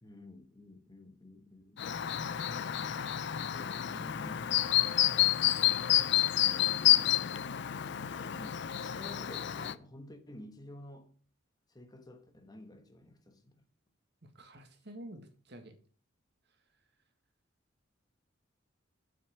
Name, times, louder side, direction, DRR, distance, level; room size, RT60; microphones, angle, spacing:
voice 1, 0.0-1.8 3.5-4.5 6.3-7.5 8.3-11.2 11.7-13.7, left 1 dB, 20° left, 1.2 m, -51 dB
Chirp tweet, 1.8-9.7, left 12 dB, 60° left, 0.4 m, -29 dB
voice 2, 14.2-15.8, right 1 dB, 60° right, 1.7 m, -49 dB
7.8 x 6.1 x 5.9 m
head